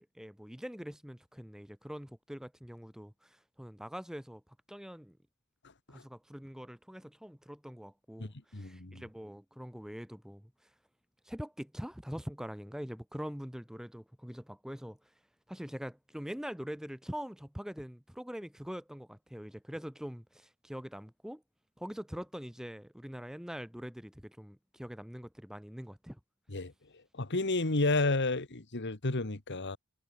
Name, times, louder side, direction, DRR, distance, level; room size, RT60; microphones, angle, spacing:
voice 1, 0.0-4.4 4.7-5.2 5.9-10.7 11.2-15.0 15.5-21.4 21.8-26.2, equal, 5° right, 1.1 m, -43 dB
voice 2, 8.2-9.0 26.5-26.7 27.1-29.8, left 2 dB, 55° left, 1.8 m, -31 dB
head